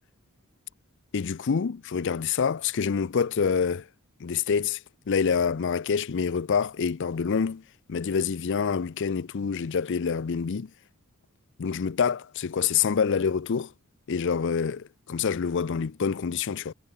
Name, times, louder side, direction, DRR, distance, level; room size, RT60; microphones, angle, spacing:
voice 1, 1.1-3.8 4.2-4.8 5.1-7.6 7.9-10.7 11.6-13.7 14.1-16.7, left 6 dB, 55° left, 0.5 m, -26 dB
head